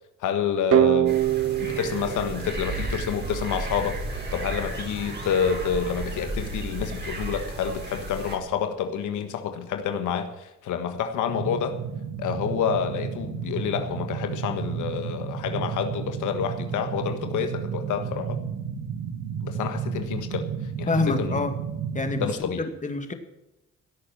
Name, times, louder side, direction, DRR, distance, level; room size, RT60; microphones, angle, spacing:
voice 1, 0.2-1.2 1.6-4.0 4.3-11.8 12.2-18.4 19.4-20.5 20.8-21.4 22.2-22.6, left 7 dB, 80° left, 1.6 m, -28 dB
sound 1, 0.7-3.5, right 14 dB, 50° right, 0.5 m, -24 dB
sound 2, 1.1-8.4, right 2 dB, 35° right, 4.8 m, -33 dB
sound 3, 11.2-22.3, right 7 dB, 80° right, 1.8 m, -32 dB
voice 2, 20.9-21.5 21.9-23.1, left 3 dB, 25° left, 2.3 m, -27 dB
17.0 x 8.6 x 7.5 m
cardioid pair, 90°, 30 cm